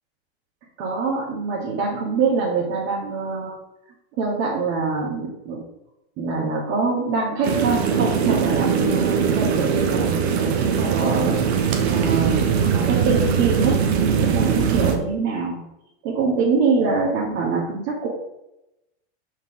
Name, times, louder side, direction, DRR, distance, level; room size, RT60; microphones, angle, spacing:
voice 1, 0.8-3.6 4.2-5.6 6.2-11.3 11.9-15.6 16.0-18.1, right 4 dB, 45° right, -5 dB, 1.9 m, -24 dB
sound 1, 7.4-15.0, right 7 dB, 65° right, 1.4 m, -21 dB
6.0 x 5.2 x 5.0 m, 0.88 s
supercardioid pair, 130°, 34 cm